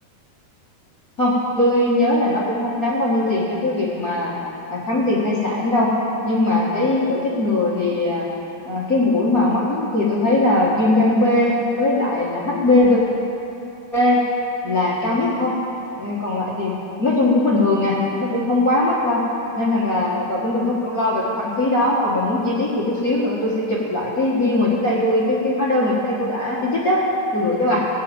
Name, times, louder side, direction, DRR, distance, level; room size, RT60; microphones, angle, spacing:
voice 1, 1.2-4.3 4.7-5.9 6.2-8.3 8.6-13.0 13.9-14.2 14.6-15.5 16.0-19.2 19.6-27.0 27.3-27.8, left 2 dB, 70° left, -6 dB, 0.8 m, -20 dB
20.0 x 6.7 x 9.0 m, 2.9 s
omnidirectional pair, 4.6 m